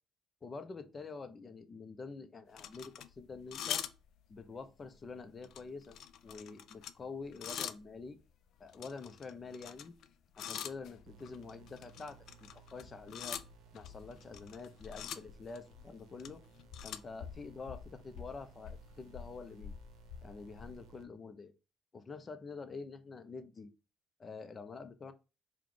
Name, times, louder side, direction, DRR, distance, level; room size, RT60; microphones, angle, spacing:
voice 1, 0.4-3.8 4.3-6.0 6.2-8.2 8.6-9.9 10.4-13.4 13.7-16.4 16.8-19.7 20.2-21.5 21.9-23.7 24.2-25.1, left 4 dB, 40° left, 10 dB, 0.7 m, -47 dB
sound 1, 2.6-4.5 4.8-5.1 5.4-7.9 8.6-10.1 10.3-20.9, left 9 dB, 65° left, 0.4 m, -45 dB
sound 2, 11.1-21.0, right 7 dB, 65° right, 0.7 m, -61 dB
4.5 x 2.3 x 3.9 m, 0.30 s
hypercardioid pair, 55°, 0 cm